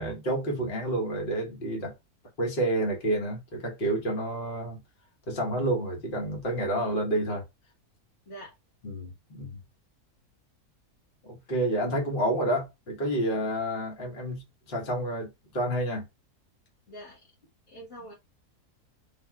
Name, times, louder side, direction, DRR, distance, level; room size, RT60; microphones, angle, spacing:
voice 1, 0.0-1.9 2.4-4.8 5.3-7.4 8.8-9.6 11.2-16.1, right 1 dB, 40° left, 1.2 m, -29 dB
voice 2, 16.9-17.2 17.7-18.1, right 1 dB, 60° left, 1.3 m, -44 dB
3.5 x 2.6 x 2.2 m
omnidirectional pair, 1.7 m